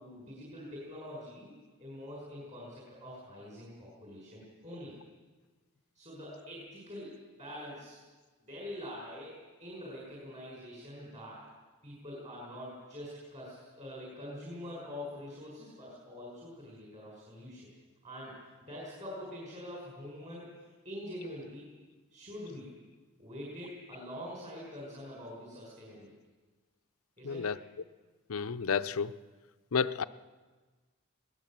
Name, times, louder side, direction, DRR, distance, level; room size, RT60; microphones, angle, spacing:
voice 1, 0.0-1.5 1.8-5.0 5.9-8.0 8.4-11.4 11.8-17.7 18.0-18.3 18.6-20.5 20.8-21.7 22.1-22.7 23.2-26.1 27.2-27.6, left 1 dB, 35° right, -4 dB, 5.6 m, -45 dB
voice 2, 27.2-27.6 28.3-29.1 29.7-30.0, left 6 dB, 70° left, 13 dB, 0.6 m, -31 dB
21.0 x 18.0 x 7.5 m, 1.4 s
head